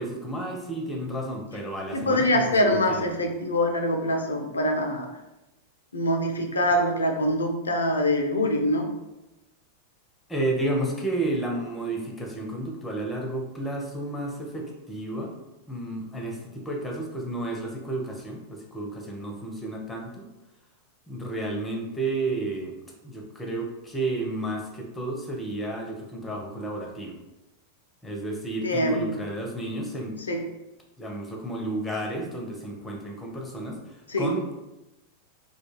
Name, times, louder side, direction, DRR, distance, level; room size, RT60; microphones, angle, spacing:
voice 1, 0.0-3.2 10.3-15.4 15.7-20.3 21.1-22.8 23.0-27.2 28.0-30.2 31.0-34.6, right 2 dB, 10° left, 0 dB, 0.6 m, -32 dB
voice 2, 1.9-5.1 5.9-8.9 28.6-29.0 30.3-30.4 34.1-34.3, left 1 dB, 75° left, 3 dB, 0.4 m, -24 dB
2.2 x 2.2 x 3.1 m, 0.98 s
figure-of-eight pair, 90°, 0 cm